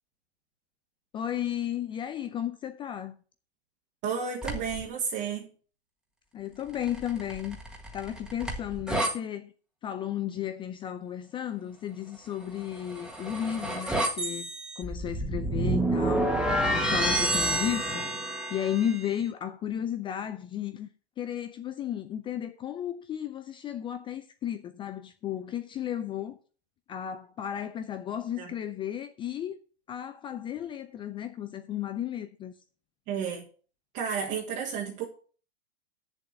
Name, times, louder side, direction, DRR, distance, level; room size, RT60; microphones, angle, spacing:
voice 1, 1.1-3.1 6.3-7.6 7.9-9.5 9.8-14.5 14.8-16.3 16.7-18.1 18.5-20.9 21.2-26.4 26.9-29.6 29.9-32.5, left 10 dB, 15° left, 0.4 m, -34 dB
voice 2, 4.0-5.5 28.4-28.5 33.1-33.5 33.9-35.1, right 6 dB, 35° right, 1.9 m, -32 dB
sound 1, 4.4-4.8 6.7-9.1 12.6-19.0, right 1 dB, ahead, 1.6 m, -29 dB
7.8 x 7.1 x 6.5 m
hypercardioid pair, 120°, 31 cm